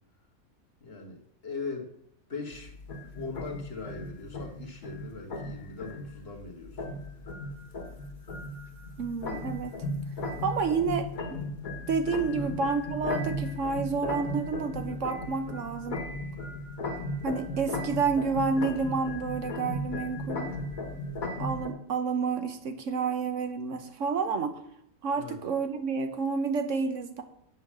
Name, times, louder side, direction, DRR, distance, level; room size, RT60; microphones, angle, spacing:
voice 1, 0.8-1.2 1.4-1.9 2.3-2.7 3.0-6.8 10.5-10.7 12.4-12.5 25.1-25.4, left 4 dB, 45° left, 2 dB, 1.7 m, -40 dB
sound 1, 2.5-21.7, left 1 dB, 80° left, 1.8 m, -36 dB
voice 2, 9.0-9.7 10.4-11.4 11.9-16.0 17.2-20.5 21.4-24.6 25.0-27.2, right 5 dB, 65° right, 8 dB, 1.1 m, -30 dB
8.5 x 5.6 x 7.3 m, 0.72 s
omnidirectional pair, 1.5 m